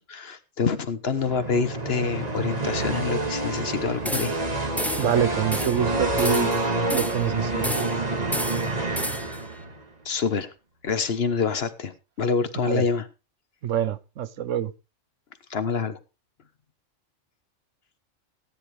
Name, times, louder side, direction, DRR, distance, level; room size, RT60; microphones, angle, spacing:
voice 1, 0.0-4.3 10.0-10.5 10.8-13.0 15.5-16.0, left 5 dB, 55° left, 1.3 m, -26 dB
sound 1, 1.1-9.8, right 2 dB, 35° right, 1.8 m, -28 dB
sound 2, 4.1-4.5 4.8-5.2 5.5-5.8 6.2-7.3 7.6-8.0 8.3-9.4, equal, ahead, 0.6 m, -31 dB
voice 2, 5.0-6.5 6.9-7.9 12.6-12.8 13.6-14.7, right 9 dB, 75° right, 1.1 m, -26 dB
16.5 x 10.0 x 3.3 m
omnidirectional pair, 1.3 m